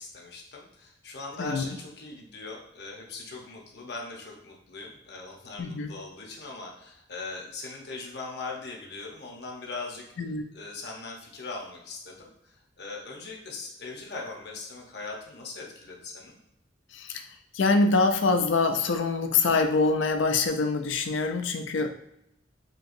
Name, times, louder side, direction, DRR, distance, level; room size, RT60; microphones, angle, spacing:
voice 1, 0.0-10.1 10.5-16.4, left 3 dB, 60° left, -1 dB, 0.9 m, -40 dB
voice 2, 1.4-1.7 5.6-5.9 10.2-10.4 16.9-21.9, left 3 dB, 85° left, 6 dB, 0.4 m, -25 dB
4.5 x 2.8 x 2.5 m, 0.79 s
head